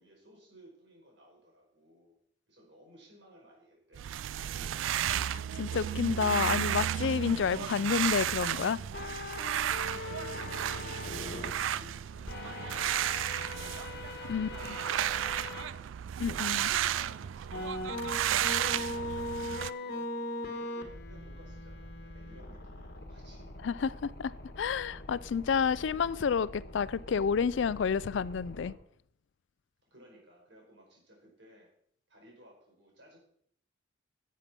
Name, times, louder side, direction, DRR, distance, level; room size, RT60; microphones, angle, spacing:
voice 1, 0.0-2.1 2.5-4.0 4.4-5.2 9.9-15.9 16.4-20.1 20.4-23.5 29.9-31.7 32.1-33.2, equal, 65° right, 5.2 m, -58 dB
sound 1, 3.9-19.7, right 10 dB, 80° right, 0.3 m, -33 dB
voice 2, 5.6-8.8 14.3-14.5 16.2-16.7 23.6-28.7, left 6 dB, 70° left, 0.4 m, -30 dB
sound 2, 8.9-11.5 12.3-15.7 16.3-16.4 17.5-28.7, left 2 dB, 55° left, 1.4 m, -41 dB
10.5 x 7.5 x 5.8 m
head